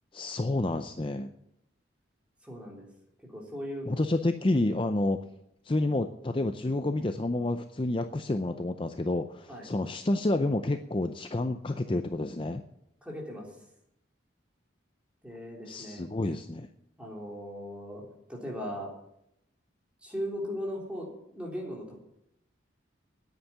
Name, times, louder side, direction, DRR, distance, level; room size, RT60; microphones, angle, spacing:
voice 1, 0.1-1.3 3.9-5.2 5.6-12.6 15.7-16.7, left 2 dB, 25° left, 8 dB, 0.5 m, -29 dB
voice 2, 2.4-2.9 3.2-3.9 9.5-9.7 13.0-13.5 15.2-16.0 17.0-18.0 18.3-18.9 20.0-21.1 21.3-22.0, equal, 5° right, -2 dB, 3.6 m, -38 dB
9.9 x 9.2 x 9.7 m, 0.79 s
head